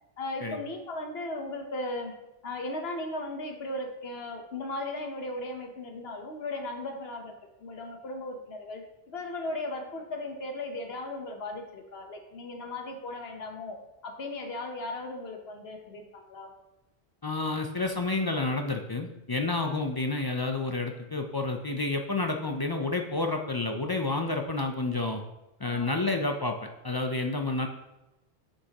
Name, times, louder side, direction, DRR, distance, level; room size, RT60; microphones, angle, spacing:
voice 1, 0.2-2.1 2.4-7.3 7.6-13.8 14.0-16.5 25.6-26.0, left 2 dB, 75° left, 3 dB, 1.2 m, -37 dB
voice 2, 17.2-25.2 25.6-26.6 26.8-27.7, left 3 dB, 35° left, 3 dB, 0.4 m, -29 dB
9.8 x 5.3 x 2.9 m, 0.99 s
omnidirectional pair, 1.1 m